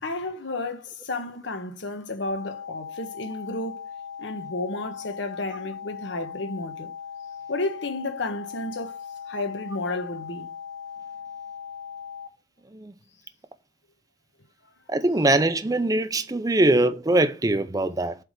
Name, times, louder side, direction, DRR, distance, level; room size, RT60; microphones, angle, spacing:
voice 1, 0.0-3.9 4.2-6.9 7.5-9.0 9.3-10.5, left 2 dB, 75° left, 1.3 m, -32 dB
sound 1, 2.3-12.3, left 7 dB, 55° left, 1.9 m, -39 dB
voice 2, 14.9-18.2, right 2 dB, 20° right, 0.6 m, -22 dB
8.1 x 3.5 x 6.5 m
head